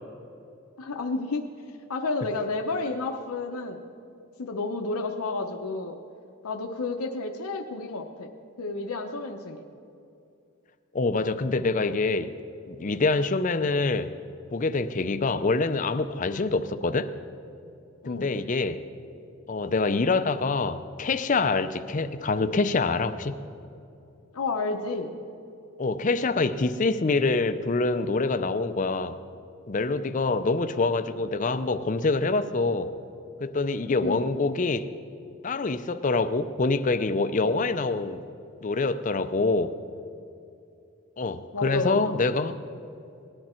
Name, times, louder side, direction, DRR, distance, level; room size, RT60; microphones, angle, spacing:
voice 1, 0.8-1.5 1.9-3.8 4.4-6.0 6.4-8.3 8.6-9.6 18.0-18.3 24.3-25.1 34.0-34.2 41.5-42.1, left 3 dB, 85° left, 3 dB, 0.8 m, -31 dB
voice 2, 10.9-12.3 12.7-14.1 14.5-17.1 18.0-18.8 19.5-23.3 25.8-29.2 29.7-32.9 33.4-34.9 35.4-38.2 38.6-39.7 41.2-42.6, left 3 dB, 35° left, 10 dB, 0.5 m, -25 dB
19.0 x 11.0 x 4.4 m, 2.6 s
head